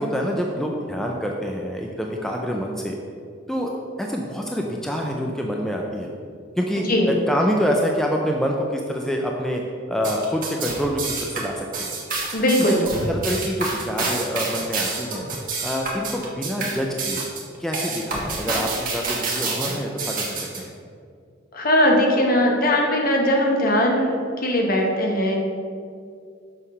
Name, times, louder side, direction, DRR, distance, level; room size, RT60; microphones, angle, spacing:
voice 1, 0.0-3.0 3.5-3.7 4.0-6.1 6.6-9.6 9.9-11.9 12.4-15.2 15.6-17.2 17.6-20.7, equal, ahead, 0 dB, 0.4 m, -26 dB
sound 1, 10.0-20.6, right 3 dB, 45° right, 1.3 m, -28 dB
voice 2, 12.3-12.9 21.5-25.4, left 1 dB, 50° left, 0 dB, 1.0 m, -20 dB
6.3 x 3.7 x 5.4 m, 2.2 s
head